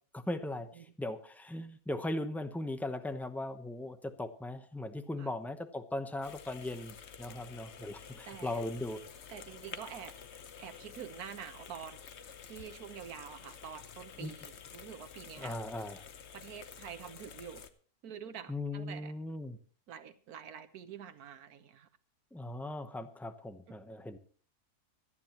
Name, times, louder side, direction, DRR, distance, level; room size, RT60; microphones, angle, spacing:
voice 1, 0.1-9.0 14.2-14.3 15.4-16.0 18.5-19.6 22.3-24.2, left 1 dB, ahead, 8 dB, 0.5 m, -38 dB
sound 1, 6.2-17.7, left 7 dB, 50° left, 1.1 m, -50 dB
voice 2, 8.3-8.6 9.3-10.1 10.6-12.0 12.4-15.6 16.3-17.6 18.0-19.1 19.9-21.9, right 8 dB, 75° right, 11 dB, 1.5 m, -47 dB
25.0 x 10.0 x 3.0 m, 0.41 s
omnidirectional pair, 1.6 m